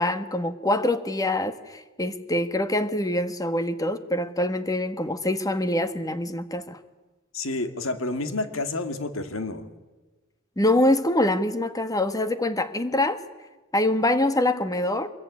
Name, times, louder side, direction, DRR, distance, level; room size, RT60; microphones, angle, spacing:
voice 1, 0.0-6.8 10.6-13.2 13.7-15.1, left 1 dB, 20° left, 10 dB, 1.5 m, -24 dB
voice 2, 7.3-9.7, left 2 dB, 70° left, 9 dB, 2.2 m, -29 dB
25.0 x 22.0 x 9.7 m, 1.2 s
head